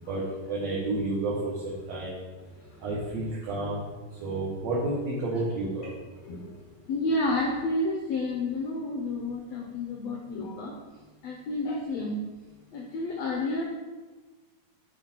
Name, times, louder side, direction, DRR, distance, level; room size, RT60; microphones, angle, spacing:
voice 1, 0.1-2.1 2.8-3.9 4.2-5.9, right 2 dB, 60° right, -6 dB, 2.2 m, -30 dB
voice 2, 6.3-6.6 6.9-10.7 11.2-12.1 12.7-13.6, left 2 dB, 90° left, 0 dB, 1.5 m, -30 dB
10.5 x 4.9 x 4.5 m, 1.3 s
omnidirectional pair, 4.2 m